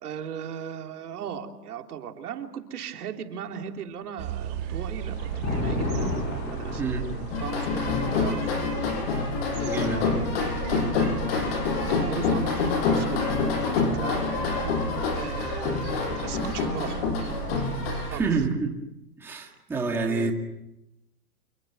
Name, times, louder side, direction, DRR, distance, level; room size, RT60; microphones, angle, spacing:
voice 1, 0.0-6.8 7.4-8.7 9.6-13.4 13.8-14.4 15.1-17.1 18.0-18.2 20.1-20.3, right 8 dB, 70° right, 4 dB, 3.5 m, -38 dB
Thunder, 4.2-11.4 12.5-14.2, left 2 dB, 20° left, 7.4 m, -35 dB
sound 1, 4.2-18.5, right 10 dB, 25° right, 1.9 m, -36 dB
sound 2, 7.3-18.1, left 4 dB, 40° left, 6.7 m, -27 dB
voice 2, 9.6-10.2 18.1-18.7 19.2-20.3, right 4 dB, 5° right, 0 dB, 2.0 m, -28 dB
28.0 x 20.5 x 9.4 m, 0.87 s
hypercardioid pair, 175°, 47 cm